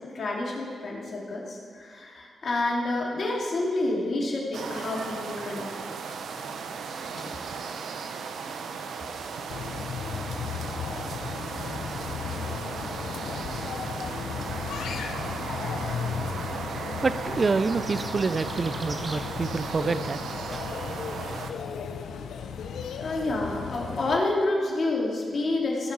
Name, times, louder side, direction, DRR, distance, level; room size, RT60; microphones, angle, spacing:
voice 1, 0.1-5.7 7.1-7.3 23.0-25.9, left 2 dB, 65° left, -2 dB, 2.7 m, -28 dB
sound 1, 4.5-21.5, right 5 dB, 80° right, 0.7 m, -36 dB
sound 2, 9.5-24.2, left 6 dB, 85° left, 0.6 m, -35 dB
voice 2, 16.8-20.2 20.5-20.6 21.5-21.6, right 4 dB, 45° right, 14 dB, 0.4 m, -27 dB
sound 3, 17.2-19.3, right 1 dB, 30° right, 1.4 m, -42 dB
16.0 x 5.4 x 6.1 m, 2.1 s
supercardioid pair, 50°, 0 cm